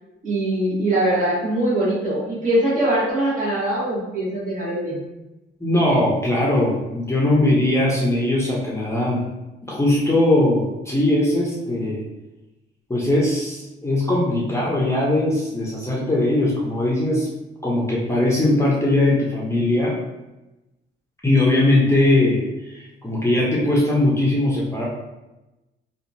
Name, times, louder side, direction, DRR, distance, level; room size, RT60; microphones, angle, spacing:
voice 1, 0.2-5.1, right 1 dB, 40° right, -6 dB, 1.2 m, -22 dB
voice 2, 5.6-9.2 9.6-12.0 12.9-17.3 17.6-20.0 21.2-24.9, left 1 dB, 15° left, -5 dB, 0.7 m, -20 dB
2.8 x 2.4 x 2.6 m, 1.0 s
cardioid pair, 90°, 20 cm